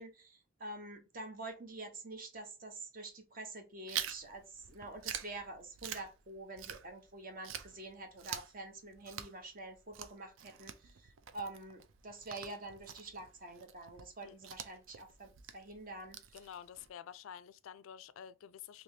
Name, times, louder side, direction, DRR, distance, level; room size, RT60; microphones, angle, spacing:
voice 1, 0.0-16.2, right 2 dB, 45° right, 0.9 m, -47 dB
Chewing mastication, 3.9-7.1 7.4-16.9, right 9 dB, 80° right, 0.5 m, -46 dB
voice 2, 16.3-18.8, left 9 dB, 85° left, 0.3 m, -50 dB
3.2 x 2.9 x 2.7 m
head